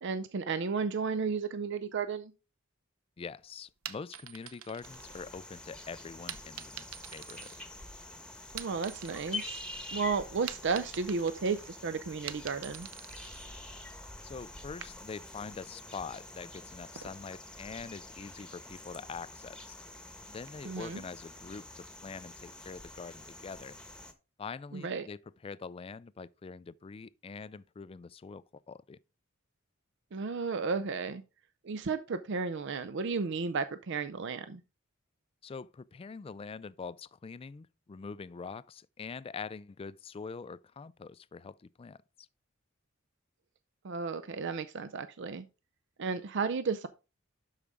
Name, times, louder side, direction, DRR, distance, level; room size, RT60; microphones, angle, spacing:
voice 1, 0.0-2.3 8.5-9.7 9.9-12.9 20.6-21.0 24.7-25.1 30.1-31.2 31.6-34.6 43.8-45.5 46.0-46.9, right 4 dB, 60° right, 0.5 m, -33 dB
voice 2, 3.2-7.5 14.2-19.7 20.3-23.8 24.4-29.0 35.4-42.3, left 5 dB, 25° left, 0.3 m, -44 dB
sound 1, 3.7-5.6 6.3-8.1 8.4-9.7 10.0-13.5, right 11 dB, 85° right, 0.8 m, -46 dB
sound 2, 4.8-24.1, left 2 dB, 5° left, 1.1 m, -47 dB
12.0 x 4.9 x 3.5 m
head